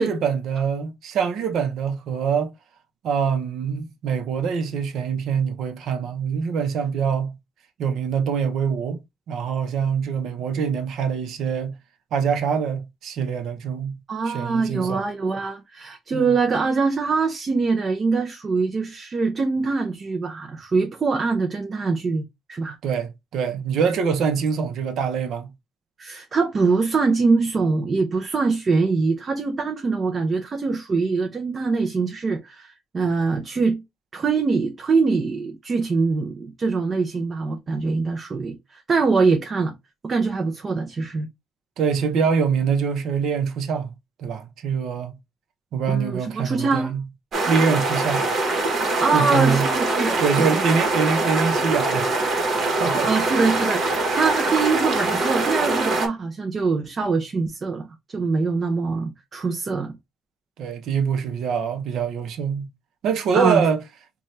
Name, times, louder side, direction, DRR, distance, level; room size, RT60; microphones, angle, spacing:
voice 1, 0.0-2.5 3.0-7.4 7.8-9.0 9.3-11.8 12.1-14.0 14.3-15.0 16.1-16.3 22.8-25.5 41.8-43.9 44.2-45.1 45.7-47.0 47.5-48.2 49.1-49.7 50.2-53.1 60.6-62.7 63.0-63.8, right 6 dB, 80° right, 0.7 m, -24 dB
voice 2, 14.1-22.8 26.0-33.8 34.1-39.7 40.0-41.3 45.9-46.9 49.0-50.7 53.0-57.9 58.1-60.0 63.3-63.6, right 4 dB, 40° right, 0.6 m, -23 dB
sound 1, 47.3-56.1, right 2 dB, 60° right, 1.1 m, -23 dB
4.0 x 2.3 x 3.1 m
cardioid pair, 90°, 0 cm